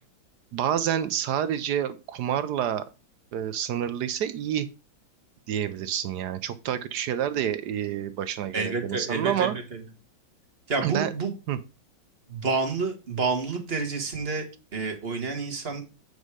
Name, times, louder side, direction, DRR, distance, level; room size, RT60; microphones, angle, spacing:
voice 1, 0.5-2.9 3.3-4.7 5.5-9.5 10.8-11.1 11.5-11.6, right 10 dB, 70° right, 13 dB, 1.0 m, -28 dB
voice 2, 8.5-9.5 10.7-11.3 12.3-14.4 14.7-15.8, right 4 dB, 30° right, 4 dB, 1.6 m, -28 dB
8.1 x 5.2 x 4.8 m, 0.30 s
omnidirectional pair, 2.2 m